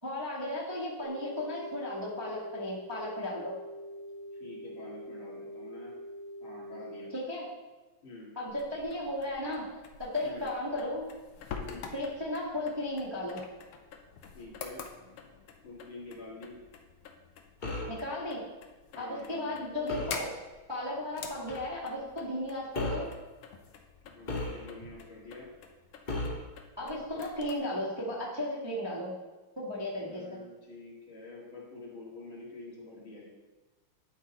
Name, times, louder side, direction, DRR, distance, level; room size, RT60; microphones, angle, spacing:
voice 1, 0.0-3.5 7.1-7.5 8.3-9.7 10.0-11.0 11.9-13.4 17.9-18.4 19.0-20.3 20.7-23.1 26.8-29.1 29.6-30.4, left 1 dB, 15° right, -7 dB, 1.6 m, -35 dB
sound 1, 1.0-7.1, equal, 70° right, 1.8 m, -44 dB
voice 2, 4.4-6.0 6.4-7.1 8.0-8.3 10.2-10.5 11.6-11.9 14.3-14.8 15.6-16.5 18.9-19.6 24.0-25.5 30.0-33.2, left 2 dB, 70° left, -6 dB, 3.2 m, -47 dB
sound 2, 8.5-27.6, left 6 dB, 85° left, 1.7 m, -47 dB
sound 3, 17.6-18.0 19.9-20.2 21.5-21.7 22.7-23.2 24.3-24.9 26.1-26.5, left 2 dB, 30° left, 0.9 m, -35 dB
11.5 x 4.0 x 4.2 m, 1.2 s
omnidirectional pair, 2.3 m